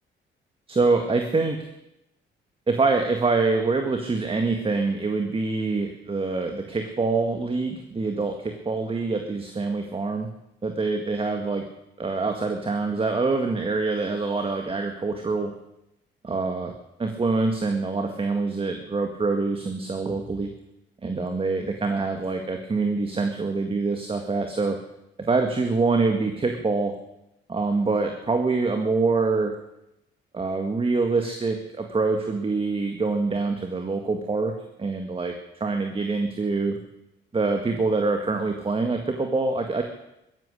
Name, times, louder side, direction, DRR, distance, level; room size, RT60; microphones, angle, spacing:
voice 1, 0.7-1.6 2.7-10.3 10.6-11.7 12.0-15.5 16.2-16.7 17.0-20.5 21.0-24.8 25.3-26.9 27.5-29.6 30.3-34.5 34.8-35.3 35.6-36.8 37.3-39.8, right 3 dB, 30° right, 4 dB, 1.9 m, -25 dB
15.5 x 14.0 x 6.7 m, 0.86 s
cardioid pair, 90°, 20 cm